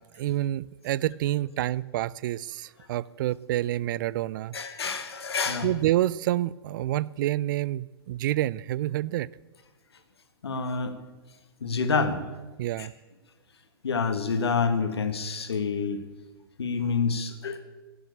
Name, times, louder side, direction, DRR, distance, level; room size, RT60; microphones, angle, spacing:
voice 1, 0.0-4.6 5.6-9.3 12.6-12.9, right 14 dB, 50° right, 22 dB, 0.4 m, -28 dB
voice 2, 4.5-5.7 10.4-10.9 11.6-12.2 12.8-12.9 13.8-16.0 16.6-17.6, left 5 dB, 80° left, 8 dB, 1.8 m, -27 dB
16.5 x 7.4 x 8.5 m, 1.2 s
hypercardioid pair, 115°, 13 cm